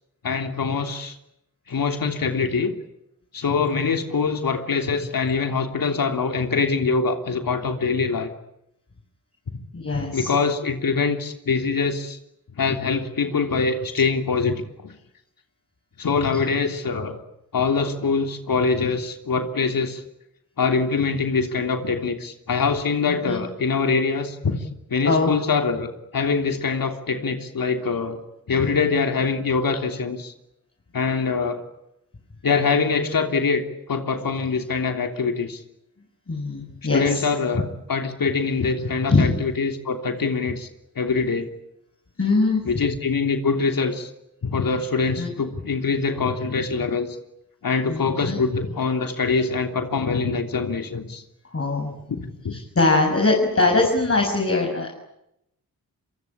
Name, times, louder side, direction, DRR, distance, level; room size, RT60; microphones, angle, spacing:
voice 1, 0.2-1.2 1.7-2.7 3.3-8.3 9.5-9.6 10.1-12.2 12.6-14.9 16.0-17.2 17.5-20.0 20.6-28.2 28.5-30.3 30.9-31.6 32.4-35.6 36.9-40.7 40.9-41.5 42.6-44.1 44.4-47.1 47.6-51.2 52.1-52.2 52.4-52.6, left 4 dB, 75° left, 5 dB, 3.3 m, -24 dB
voice 2, 9.7-10.3 23.2-23.4 25.0-25.3 36.3-37.3 39.1-39.3 42.2-42.6 45.2-45.3 47.9-48.4 51.5-51.9 52.5-54.9, left 3 dB, 40° left, 0 dB, 6.8 m, -21 dB
27.5 x 24.5 x 8.7 m, 0.81 s
wide cardioid pair, 90°, 35 cm